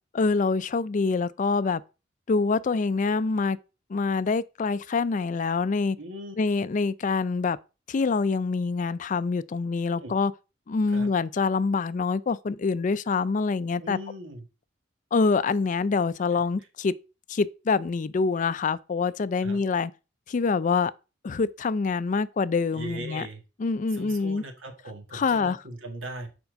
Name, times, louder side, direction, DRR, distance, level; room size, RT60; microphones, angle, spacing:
voice 1, 0.1-1.8 2.3-3.6 3.9-6.0 6.4-7.6 7.9-10.3 10.7-14.0 15.1-16.9 17.3-19.9 20.3-20.9 21.2-23.3 23.6-24.4 25.1-25.6, left 4 dB, 40° left, 0.4 m, -25 dB
voice 2, 6.0-6.4 10.0-10.1 10.9-11.1 13.8-14.4 19.4-19.6 22.7-23.4 23.9-26.3, right 1 dB, 90° right, 1.8 m, -39 dB
7.1 x 4.5 x 5.0 m
head